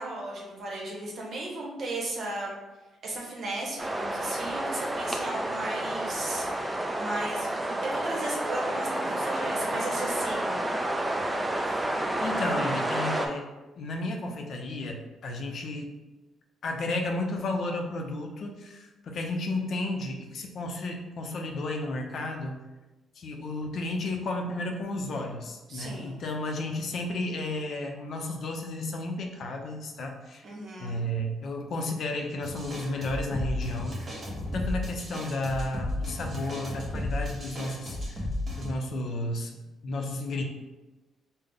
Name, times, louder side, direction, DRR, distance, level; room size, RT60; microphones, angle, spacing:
voice 1, 0.0-2.5 3.0-10.7 25.7-26.2 30.4-31.1, right 2 dB, 55° right, -2 dB, 0.9 m, -36 dB
sound 1, 3.8-13.3, right 1 dB, 15° right, 0.4 m, -30 dB
voice 2, 12.2-13.5 13.8-15.9 16.6-22.6 23.2-30.4 30.8-34.0 34.5-38.2 38.6-39.6 39.8-40.4, left 2 dB, 60° left, 2 dB, 0.5 m, -33 dB
sound 2, 32.4-38.7, left 1 dB, 30° right, 1.0 m, -33 dB
3.8 x 2.1 x 3.5 m, 1.1 s
cardioid pair, 90°, 0 cm